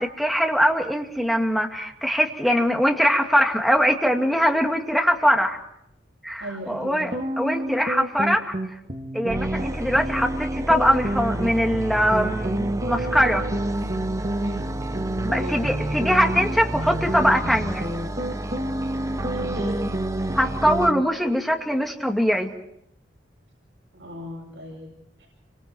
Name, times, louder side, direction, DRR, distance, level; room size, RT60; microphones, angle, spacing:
voice 1, 0.0-5.6 6.2-7.1 7.4-8.5 9.1-13.5 15.2-17.9 20.3-22.5, equal, ahead, 2 dB, 2.4 m, -22 dB
voice 2, 6.4-7.1 14.4-14.7 15.3-15.6 19.3-19.8 23.9-25.3, right 1 dB, 80° right, -2 dB, 7.6 m, -36 dB
sound 1, 7.1-21.0, right 1 dB, 40° right, 2.0 m, -29 dB
sound 2, 9.3-20.9, right 1 dB, 20° right, 0.8 m, -31 dB
29.5 x 25.5 x 4.6 m, 0.77 s
head